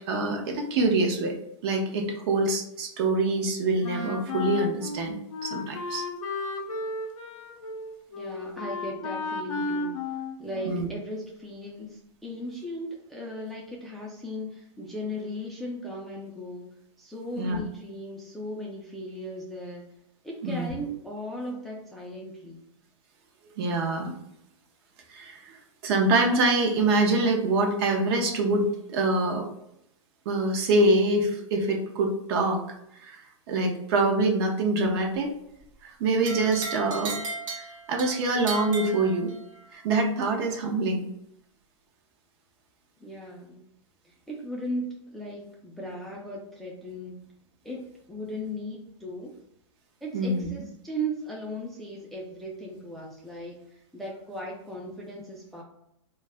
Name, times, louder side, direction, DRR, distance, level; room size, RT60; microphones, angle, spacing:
voice 1, 0.1-1.4 1.6-5.2 5.4-6.0 10.6-10.9 17.4-17.6 20.4-20.7 23.6-24.1 25.1-25.6 25.8-29.5 30.3-32.6 33.0-33.2 33.5-35.3 35.8-37.1 37.9-39.3 39.7-41.0 50.1-50.5, right 2 dB, 50° right, 2 dB, 0.6 m, -25 dB
Wind instrument woodwind instrument, 3.8-11.0, left 3 dB, 80° left, 0.6 m, -34 dB
voice 2, 8.1-10.0 10.4-16.7 17.0-19.8 20.2-22.6 43.0-43.6 44.0-47.2 47.6-47.8 48.1-49.4 50.0-55.6, equal, ahead, -3 dB, 0.3 m, -37 dB
sound 1, 36.2-39.6, right 3 dB, 85° right, 0.9 m, -36 dB
2.3 x 2.0 x 3.3 m, 0.77 s
hypercardioid pair, 135°, 16 cm